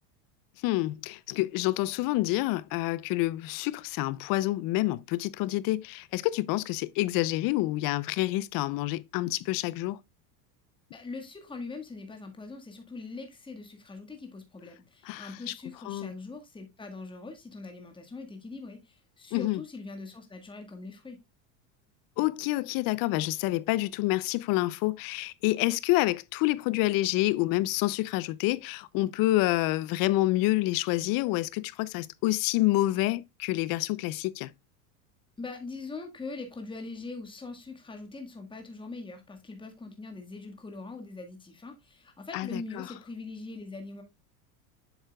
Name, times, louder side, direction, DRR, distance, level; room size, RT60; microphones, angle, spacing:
voice 1, 0.6-10.0 15.0-15.5 15.8-16.1 19.3-19.6 22.2-34.5 42.3-42.9, left 18 dB, 50° left, 0.6 m, -28 dB
voice 2, 10.9-21.2 35.4-44.0, left 3 dB, 10° left, 1.7 m, -42 dB
7.9 x 6.4 x 2.3 m
supercardioid pair, 105°, 46 cm